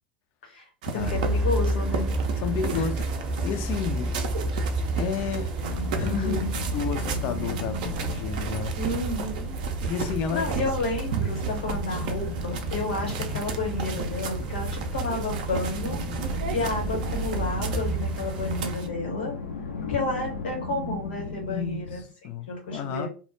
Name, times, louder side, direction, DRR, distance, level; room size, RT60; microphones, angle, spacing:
sound 1, 0.8-18.9, right 7 dB, 60° right, 0.4 m, -36 dB
voice 1, 0.9-2.2 2.7-2.9 5.9-6.5 8.8-9.6 10.3-16.0 16.5-19.4 19.9-22.0 22.5-23.1, left 2 dB, 70° left, 1.0 m, -31 dB
sound 2, 1.0-18.7, right 2 dB, 15° right, 0.6 m, -31 dB
voice 2, 2.4-3.0 3.4-4.2 5.0-5.5 6.0-6.4 6.7-8.7 9.9-10.6 21.2-23.1, left 7 dB, 45° left, 0.4 m, -32 dB
sound 3, 5.6-22.0, left 4 dB, 85° left, 0.7 m, -37 dB
2.1 x 2.0 x 3.0 m
figure-of-eight pair, 85°, 5 cm